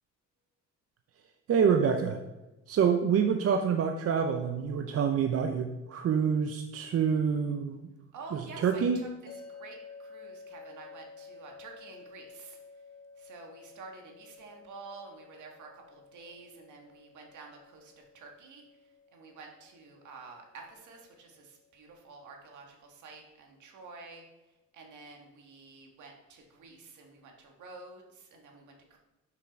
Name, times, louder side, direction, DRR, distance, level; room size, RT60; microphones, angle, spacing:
voice 1, 1.5-2.2 2.7-7.9 8.3-9.1, right 7 dB, 50° right, 5 dB, 0.6 m, -27 dB
voice 2, 8.1-12.6 13.2-18.6 19.1-24.2 24.7-29.0, right 3 dB, 75° right, 2 dB, 1.7 m, -49 dB
sound 1, 9.3-22.4, left 4 dB, 55° left, 1.4 m, -53 dB
6.1 x 5.9 x 4.6 m, 1.1 s
cardioid pair, 90°, 30 cm